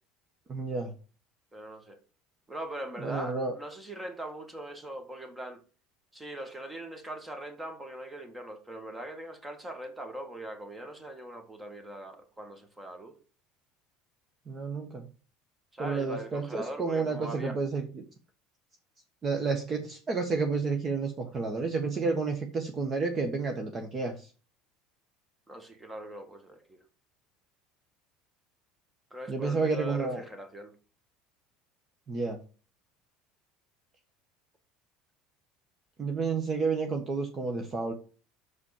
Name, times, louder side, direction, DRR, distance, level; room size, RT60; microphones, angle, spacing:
voice 1, 0.5-0.9 3.0-3.5 14.5-15.1 15.8-18.0 19.2-24.3 29.3-30.2 32.1-32.4 36.0-37.9, right 4 dB, 30° right, 1.4 m, -30 dB
voice 2, 1.5-2.0 2.5-5.6 6.1-13.2 15.7-17.6 25.5-26.8 29.1-30.7, right 1 dB, 15° right, 1.8 m, -41 dB
6.4 x 5.9 x 7.2 m
supercardioid pair, 115°, 0 cm